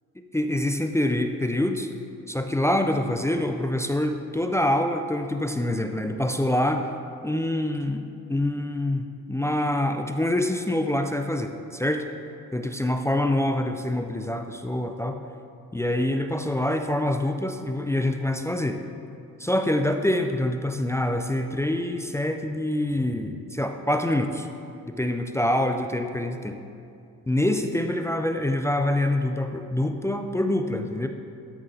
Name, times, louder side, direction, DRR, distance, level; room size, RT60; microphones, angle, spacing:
voice 1, 0.3-1.9 2.3-6.9 7.2-12.1 12.5-15.2 15.7-18.8 19.4-24.5 24.9-26.6 27.3-31.1, left 1 dB, 10° left, 5 dB, 0.4 m, -25 dB
13.0 x 5.5 x 3.8 m, 2.5 s
cardioid pair, 90°, 36 cm